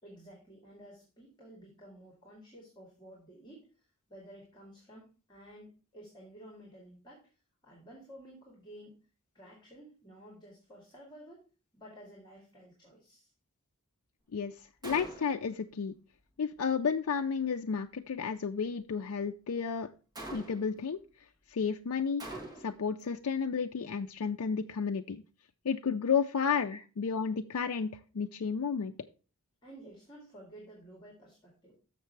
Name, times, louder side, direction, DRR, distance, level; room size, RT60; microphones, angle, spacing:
voice 1, 0.0-3.7 4.1-7.3 7.6-9.0 9.3-11.4 11.7-13.3 26.7-26.8 29.6-31.8, right 1 dB, 20° left, -1 dB, 2.1 m, -53 dB
voice 2, 14.8-15.9 16.4-19.9 20.3-21.0 21.5-22.2 22.6-25.2 25.6-28.9, left 6 dB, 65° left, 5 dB, 0.4 m, -32 dB
Gunshot gunfire, 14.8-15.5 20.1-20.8 22.2-22.9, right 2 dB, 20° right, 1.6 m, -43 dB
6.7 x 6.5 x 4.5 m, 0.34 s
head